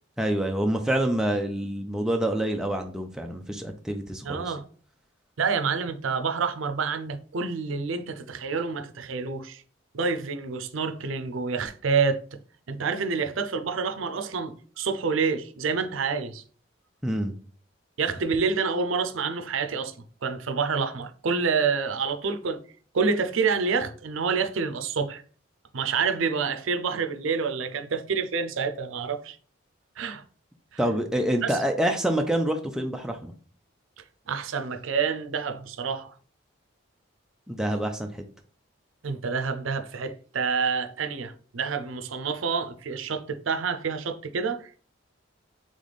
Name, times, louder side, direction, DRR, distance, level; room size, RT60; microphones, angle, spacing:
voice 1, 0.2-4.5 17.0-17.3 30.8-33.3 37.5-38.2, right 1 dB, 5° right, 0.4 m, -27 dB
voice 2, 4.2-4.6 5.4-9.6 9.9-12.4 12.7-16.4 18.0-19.9 20.2-22.6 22.9-25.2 25.7-29.4 30.0-30.2 31.4-31.5 34.3-36.1 39.0-44.8, right 5 dB, 85° right, 0.5 m, -28 dB
3.6 x 3.3 x 4.0 m
head